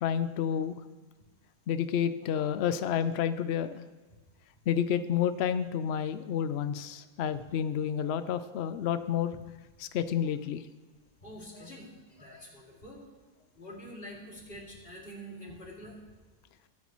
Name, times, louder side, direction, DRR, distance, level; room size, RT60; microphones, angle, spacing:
voice 1, 0.0-0.8 1.7-3.8 4.7-9.3 9.9-10.6, left 8 dB, 80° left, 12 dB, 0.5 m, -30 dB
voice 2, 11.2-13.0 13.6-16.0, equal, 35° left, -3 dB, 2.8 m, -46 dB
22.0 x 9.3 x 3.1 m, 1.2 s
omnidirectional pair, 1.7 m